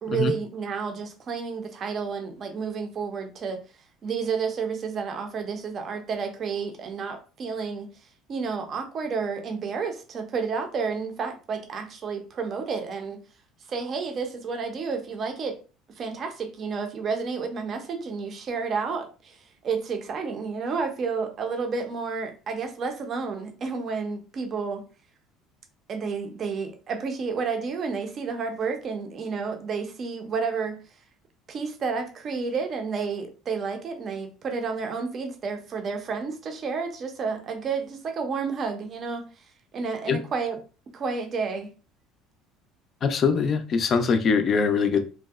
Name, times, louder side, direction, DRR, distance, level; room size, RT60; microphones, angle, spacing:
voice 1, 0.0-3.6 4.0-7.9 8.3-13.2 13.7-15.6 16.0-24.8 25.9-30.8 31.5-39.3 39.7-40.6 40.9-41.7, right 5 dB, 40° right, 5 dB, 0.5 m, -30 dB
voice 2, 43.0-45.0, left 5 dB, 40° left, 9 dB, 0.3 m, -22 dB
2.6 x 2.0 x 2.3 m, 0.34 s
cardioid pair, 125°, 0 cm